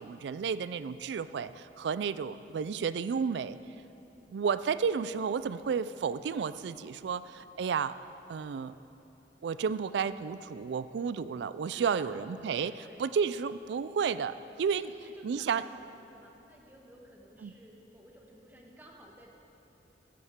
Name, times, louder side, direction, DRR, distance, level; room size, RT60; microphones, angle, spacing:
voice 1, 0.0-3.6 4.3-7.9 8.3-8.8 9.4-14.9 15.2-15.6 17.4-17.5, right 6 dB, 70° right, 14 dB, 0.3 m, -32 dB
voice 2, 11.7-12.2 12.5-13.1 14.7-19.3, equal, 10° right, -1 dB, 1.2 m, -55 dB
14.5 x 10.0 x 3.6 m, 2.9 s
head